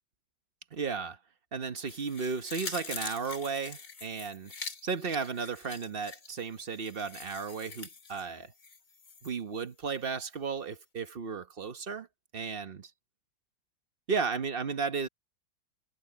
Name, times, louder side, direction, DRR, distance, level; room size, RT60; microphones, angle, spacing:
voice 1, 0.7-1.2 1.5-4.5 4.8-8.5 9.2-12.1 12.3-12.9 14.1-15.1, right 5 dB, 40° right, 0.9 m, -34 dB
sound 1, 1.8-9.3 9.7-9.8, left 4 dB, 40° left, 2.4 m, -44 dB
omnidirectional pair, 2.3 m